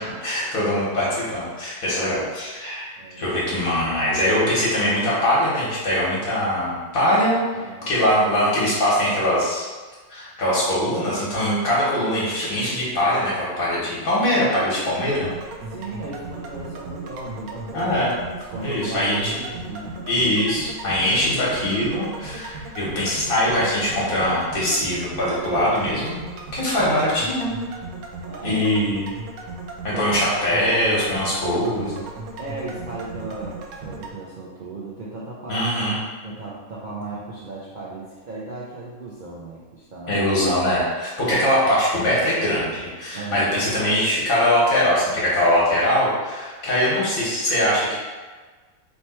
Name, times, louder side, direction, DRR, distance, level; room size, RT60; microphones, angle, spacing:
voice 1, 0.0-9.6 10.1-15.3 17.7-18.1 18.6-19.3 20.1-26.2 26.5-27.5 28.4-29.1 29.8-32.0 35.5-35.9 40.1-48.0, left 1 dB, 70° left, -7 dB, 1.7 m, -22 dB
voice 2, 3.0-3.4 7.5-7.9 15.7-17.9 18.5-20.0 28.2-28.7 29.9-30.0 30.4-30.5 32.4-35.7 36.2-40.2 43.1-43.6, right 3 dB, 60° right, -6 dB, 0.5 m, -36 dB
sound 1, 15.0-34.1, right 3 dB, 85° right, 1.1 m, -36 dB
3.4 x 3.0 x 4.2 m, 1.4 s
omnidirectional pair, 1.5 m